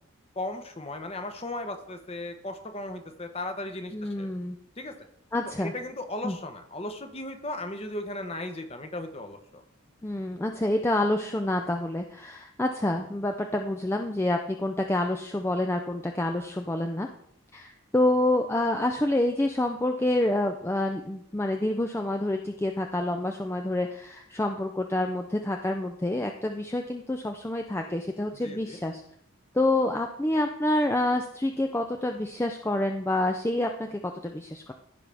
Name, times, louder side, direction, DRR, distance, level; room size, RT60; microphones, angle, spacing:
voice 1, 0.3-4.3 4.8-4.9 5.6-9.6 28.4-28.8, left 2 dB, 30° left, 7 dB, 0.9 m, -36 dB
voice 2, 3.9-4.6 5.3-5.7 6.2-6.4 10.0-17.1 17.5-29.0 29.5-34.7, left 1 dB, 10° left, 4 dB, 0.4 m, -27 dB
15.0 x 5.4 x 3.4 m, 0.72 s
head